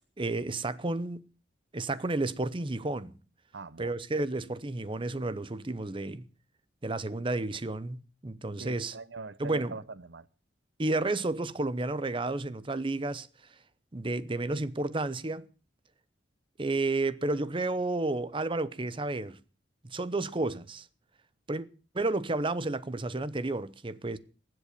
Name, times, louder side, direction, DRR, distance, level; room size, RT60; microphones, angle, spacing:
voice 1, 0.2-1.2 1.7-3.1 3.8-6.3 6.8-8.9 9.4-9.7 10.8-13.3 13.9-15.5 16.6-19.4 19.8-20.9 21.5-21.7 21.9-24.2, right 2 dB, 25° right, 0.8 m, -31 dB
voice 2, 3.5-3.9 8.6-10.3, right 4 dB, 65° right, 0.8 m, -43 dB
19.5 x 7.9 x 6.6 m
head